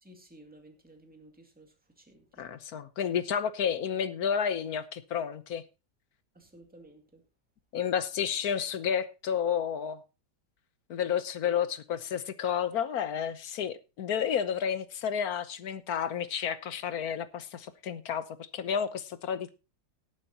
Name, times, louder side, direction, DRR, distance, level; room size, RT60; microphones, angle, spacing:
voice 1, 0.0-2.5 6.3-7.2, right 1 dB, 5° right, 2.3 m, -55 dB
voice 2, 2.4-5.6 7.7-10.0 10.9-19.5, left 8 dB, 60° left, 1.3 m, -31 dB
18.0 x 9.2 x 2.9 m
omnidirectional pair, 2.0 m